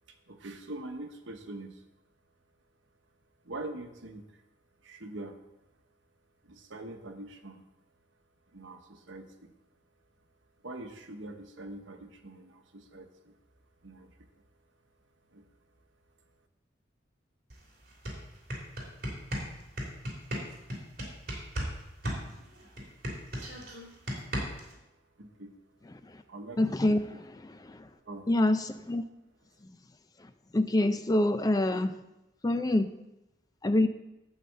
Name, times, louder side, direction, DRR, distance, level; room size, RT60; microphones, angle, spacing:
voice 1, 0.1-1.8 3.4-4.4 4.8-5.4 6.4-7.7 8.5-9.5 10.6-13.3 13.8-14.4 15.3-15.4 25.2-25.5 26.3-26.6 26.9-27.2 28.0-28.3, right 2 dB, 80° right, 5 dB, 1.1 m, -44 dB
sound 1, 17.5-17.6 17.9-21.7 22.0-24.7, equal, 50° right, 3.0 m, -35 dB
voice 2, 26.6-27.0 27.6-27.9 28.3-29.0 30.5-31.9 32.4-32.9 33.6-33.9, left 1 dB, 20° left, 10 dB, 0.4 m, -25 dB
11.5 x 4.1 x 7.7 m, 0.95 s
head